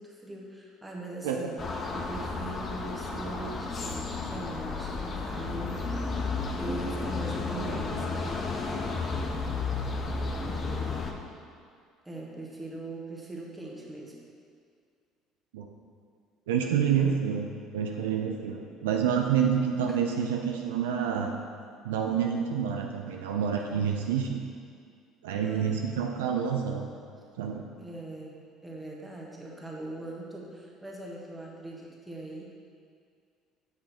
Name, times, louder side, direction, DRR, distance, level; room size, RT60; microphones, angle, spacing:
voice 1, 0.0-5.9 6.6-8.4 12.0-14.1 19.9-20.0 25.4-25.8 27.8-28.3 28.6-32.4, right 2 dB, 10° right, -3 dB, 1.6 m, -41 dB
sound 1, 1.6-11.1, left 3 dB, 35° left, 0.8 m, -32 dB
voice 2, 16.5-21.3 21.8-24.4 25.2-26.9 27.4-27.7, right 7 dB, 70° right, 2 dB, 0.4 m, -28 dB
7.7 x 5.3 x 4.2 m, 2.2 s
figure-of-eight pair, 55°, 0 cm